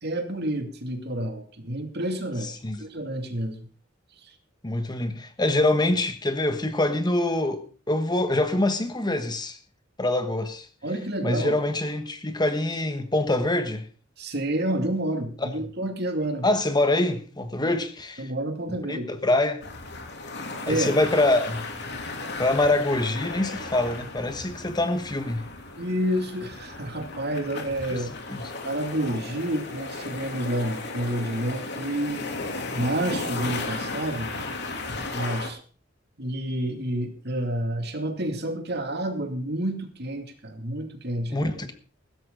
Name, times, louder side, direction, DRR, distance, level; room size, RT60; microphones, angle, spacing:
voice 1, 0.0-2.5 2.8-3.6 4.2-4.3 10.8-11.6 14.2-16.5 17.6-17.7 18.2-19.1 20.7-21.0 25.8-28.1 28.6-32.2 32.7-34.3 35.0-35.6 36.2-41.5, right 1 dB, 55° right, 2.4 m, -29 dB
voice 2, 2.4-2.8 4.6-9.6 10.0-10.7 11.2-13.9 15.4-15.5 16.4-18.3 18.9-19.6 20.7-21.6 22.4-25.5 27.9-28.0 28.3-28.4 41.3-41.7, left 2 dB, 20° left, 1.3 m, -25 dB
sound 1, 19.6-35.5, left 3 dB, 60° left, 2.9 m, -35 dB
16.0 x 13.5 x 3.9 m
head